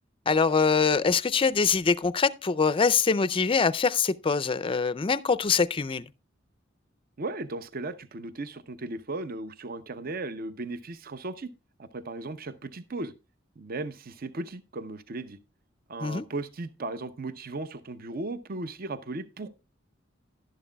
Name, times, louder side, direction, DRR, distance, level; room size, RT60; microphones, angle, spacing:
voice 1, 0.3-6.1 16.0-16.2, left 5 dB, 25° left, 0.4 m, -24 dB
voice 2, 7.2-11.5 11.8-13.1 13.6-15.4 15.9-19.5, right 2 dB, 50° right, 0.7 m, -36 dB
11.5 x 11.0 x 2.2 m
head